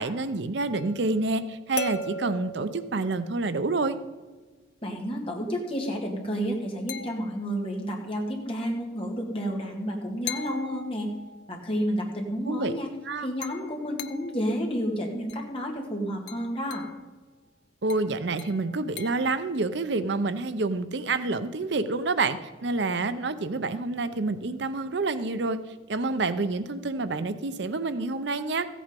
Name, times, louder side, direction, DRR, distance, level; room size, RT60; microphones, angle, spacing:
voice 1, 0.0-4.0 12.5-12.7 13.1-13.3 17.8-25.6 25.9-28.7, right 3 dB, 65° right, 11 dB, 0.6 m, -28 dB
sound 1, 0.7-3.8 6.9-7.7 10.3-11.5 13.4-14.5 15.3-15.6 16.3-17.0 17.9-19.4, left 3 dB, 60° left, 0.5 m, -39 dB
voice 2, 4.8-11.1 11.5-12.9 13.2-16.9, equal, 30° left, 0 dB, 2.0 m, -30 dB
14.5 x 8.5 x 5.2 m, 1.3 s
head